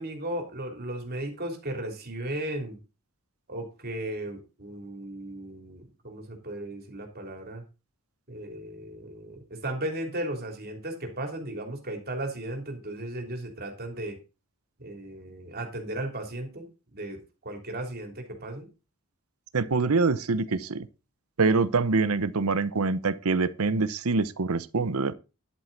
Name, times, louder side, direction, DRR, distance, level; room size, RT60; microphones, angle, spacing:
voice 1, 0.0-2.8 3.5-7.6 8.3-14.2 14.8-18.7, right 1 dB, 45° right, 3.2 m, -36 dB
voice 2, 19.5-20.9 21.4-25.1, right 4 dB, 80° right, 0.8 m, -25 dB
11.0 x 7.8 x 4.0 m
head